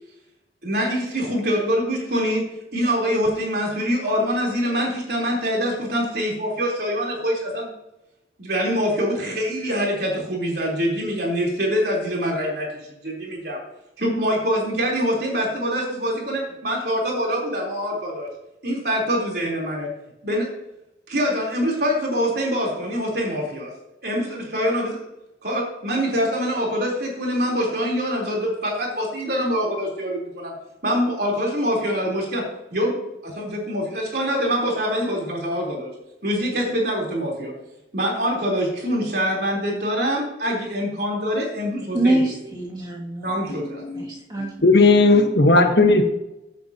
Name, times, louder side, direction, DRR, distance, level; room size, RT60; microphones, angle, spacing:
voice 1, 0.6-7.7 8.4-13.6 14.0-18.3 18.6-19.9 20.2-20.5 21.1-23.7 24.0-25.0 25.4-30.5 30.8-35.9 36.2-37.5 37.9-42.2 43.2-43.8, equal, 55° right, -2 dB, 3.8 m, -24 dB
voice 2, 41.9-43.3 43.9-44.7, right 1 dB, 25° right, -4 dB, 2.4 m, -24 dB
voice 3, 44.6-46.0, left 3 dB, 60° left, 5 dB, 1.3 m, -15 dB
15.5 x 8.5 x 2.9 m, 0.90 s
head